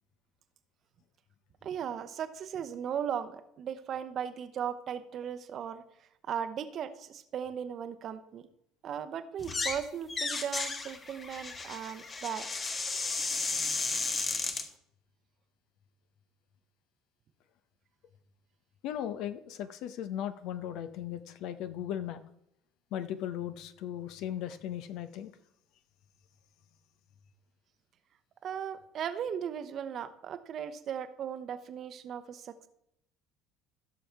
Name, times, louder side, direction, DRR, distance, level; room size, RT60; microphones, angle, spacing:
voice 1, 1.6-5.8 6.3-8.5 8.8-12.7 28.4-32.7, right 8 dB, 45° right, 11 dB, 0.9 m, -37 dB
sound 1, 9.4-9.8 10.1-14.7, left 3 dB, 30° left, 1.3 m, -34 dB
voice 2, 18.8-22.2 22.9-25.3, left 10 dB, 60° left, 11 dB, 0.8 m, -37 dB
16.0 x 6.9 x 3.5 m, 0.77 s
figure-of-eight pair, 60°, 0 cm